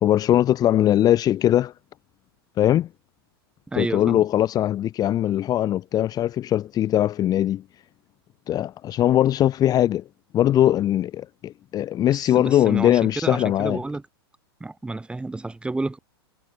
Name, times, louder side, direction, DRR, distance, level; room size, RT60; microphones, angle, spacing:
voice 1, 0.0-1.7 2.6-2.9 3.8-7.6 8.5-10.0 10.3-13.8, left 12 dB, 30° left, 1.3 m, -20 dB
voice 2, 3.7-4.3 12.0-14.0 14.6-16.0, right 2 dB, 5° right, 3.6 m, -30 dB
hypercardioid pair, 110°, 13 cm